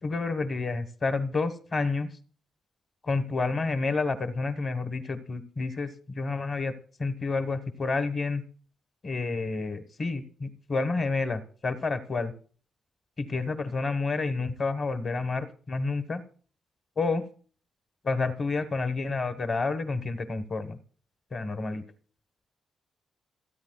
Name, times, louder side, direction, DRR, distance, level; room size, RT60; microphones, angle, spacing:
voice 1, 0.0-2.1 3.0-6.7 7.0-8.4 9.0-12.3 13.2-16.2 17.0-17.2 18.0-20.8 21.3-21.8, left 3 dB, 30° left, 11 dB, 1.3 m, -29 dB
27.5 x 9.5 x 2.3 m, 0.42 s
wide cardioid pair, 175°, 0 cm